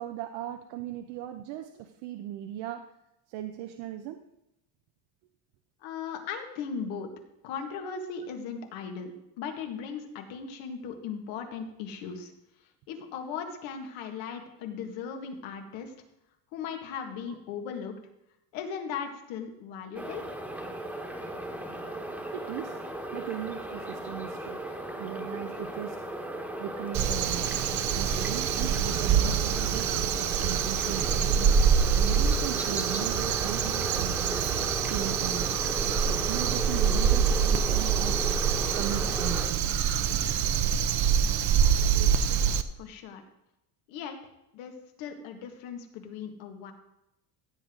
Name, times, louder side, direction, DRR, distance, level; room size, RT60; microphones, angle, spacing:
voice 1, 0.0-2.9 3.3-4.2 22.3-22.8 23.1-24.6 25.0-26.0 26.6-27.7 27.9-31.6 31.9-34.5 34.8-35.6 36.0-38.3 38.7-39.7, right 11 dB, 70° right, 7 dB, 0.9 m, -38 dB
voice 2, 5.8-7.1 7.4-12.3 12.9-15.9 16.5-18.0 18.5-20.3 41.1-41.3 41.5-42.4 42.8-43.2 43.9-44.2 44.5-46.7, left 6 dB, 80° left, 4 dB, 2.0 m, -38 dB
sound 1, 19.9-39.5, right 1 dB, 5° right, 1.3 m, -36 dB
Crow, 26.9-42.6, right 7 dB, 40° right, 0.7 m, -25 dB
16.0 x 8.0 x 3.9 m, 0.84 s
cardioid pair, 140°, 45 cm